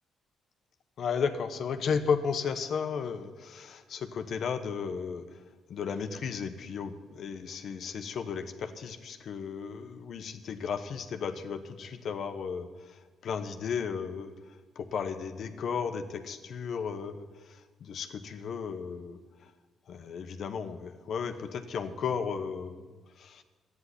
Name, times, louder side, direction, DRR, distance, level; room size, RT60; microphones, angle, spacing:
voice 1, 1.0-5.2 5.7-14.3 14.7-19.2 19.9-22.9 23.2-23.4, left 6 dB, 65° left, 7 dB, 1.1 m, -34 dB
12.0 x 9.6 x 9.9 m, 1.4 s
cardioid pair, 90°, 0 cm